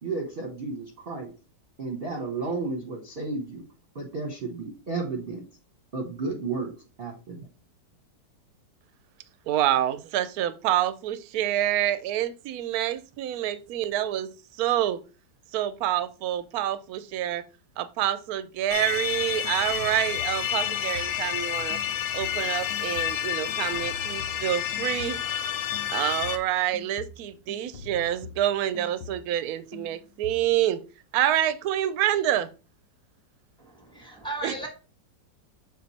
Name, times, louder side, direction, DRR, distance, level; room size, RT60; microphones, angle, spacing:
voice 1, 0.0-1.3 1.8-3.6 3.9-5.4 5.9-6.7 7.0-7.4, right 3 dB, 40° right, 1 dB, 0.9 m, -32 dB
voice 2, 9.5-14.3 14.6-15.0 15.5-17.4 17.8-21.8 22.1-25.2 25.9-30.8 31.1-32.5 34.4-34.5, right 12 dB, 70° right, 14 dB, 0.9 m, -27 dB
sound 1, 18.7-26.4, left 10 dB, 65° left, 1.0 m, -29 dB
sound 2, 19.1-21.4 21.7-25.4 25.7-29.5 29.7-30.5, left 4 dB, 90° left, 1.5 m, -45 dB
voice 3, 33.6-34.7, right 2 dB, 5° left, 1 dB, 1.2 m, -36 dB
6.5 x 4.1 x 4.1 m, 0.34 s
omnidirectional pair, 2.0 m